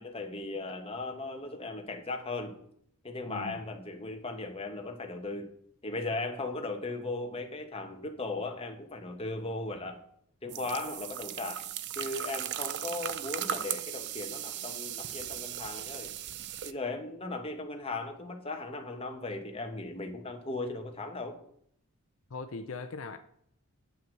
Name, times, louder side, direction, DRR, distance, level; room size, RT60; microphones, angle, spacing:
voice 1, 0.0-2.5 3.0-5.5 5.8-10.0 10.4-11.6 12.0-16.2 16.6-21.4, left 2 dB, 25° left, 4 dB, 1.1 m, -37 dB
voice 2, 3.3-3.6 22.3-23.2, left 4 dB, 65° left, 8 dB, 0.6 m, -40 dB
sound 1, 10.5-16.7, right 11 dB, 50° right, 0.5 m, -37 dB
7.8 x 5.6 x 7.5 m, 0.68 s
head